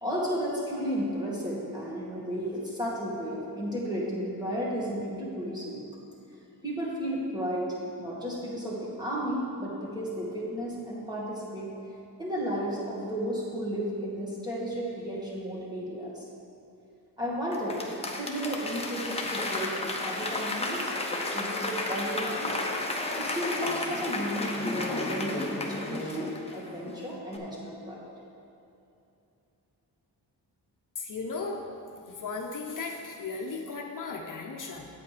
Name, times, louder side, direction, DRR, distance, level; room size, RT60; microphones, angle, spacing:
voice 1, 0.0-5.8 6.6-11.7 12.2-16.3 17.2-22.7 23.2-28.1, equal, 10° right, -6 dB, 2.0 m, -33 dB
Applause / Crowd, 17.5-26.9 27.3-27.4, left 2 dB, 15° left, 0.9 m, -32 dB
voice 2, 31.0-31.6 31.9-34.9, left 4 dB, 55° left, 1 dB, 0.8 m, -36 dB
8.5 x 8.4 x 5.0 m, 2.7 s
wide cardioid pair, 140°, 37 cm